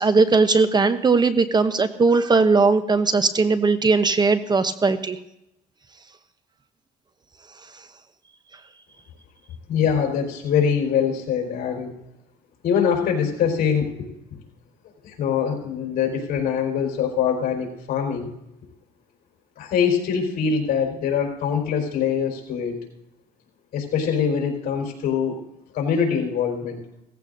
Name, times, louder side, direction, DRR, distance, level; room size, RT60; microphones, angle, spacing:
voice 1, 0.0-5.2, right 4 dB, 25° right, 10 dB, 0.8 m, -19 dB
voice 2, 9.7-11.9 12.6-14.1 15.0-18.3 19.6-22.8 23.7-25.4 25.7-26.8, left 7 dB, 65° left, 2 dB, 4.3 m, -23 dB
17.5 x 15.0 x 2.6 m, 0.86 s
cardioid pair, 110°, 17 cm